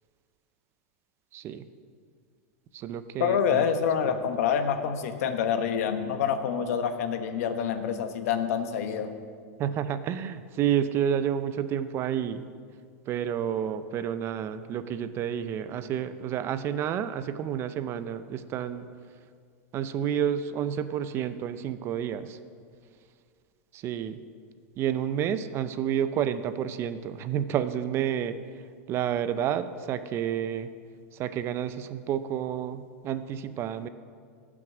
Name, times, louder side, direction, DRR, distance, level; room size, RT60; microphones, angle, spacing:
voice 1, 1.3-1.7 2.7-3.7 9.6-12.4 13.1-18.9 19.7-22.4 23.7-24.2 24.8-28.6 28.9-30.7 31.1-33.9, right 9 dB, 30° right, 12 dB, 0.5 m, -30 dB
voice 2, 3.2-9.1, left 7 dB, 70° left, 8 dB, 1.1 m, -27 dB
15.5 x 6.1 x 6.1 m, 2.1 s
supercardioid pair, 150°, 8 cm